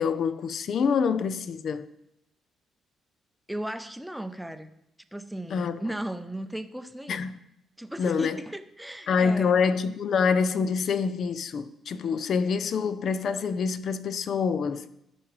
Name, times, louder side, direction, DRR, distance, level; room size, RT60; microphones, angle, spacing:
voice 1, 0.0-1.9 5.5-5.8 7.1-7.4 8.0-8.4 9.1-14.9, left 5 dB, 60° left, 0.4 m, -26 dB
voice 2, 3.5-4.7 5.1-7.3 7.8-9.6, right 1 dB, 5° right, 0.5 m, -36 dB
13.5 x 4.7 x 3.1 m
cardioid pair, 90°, 0 cm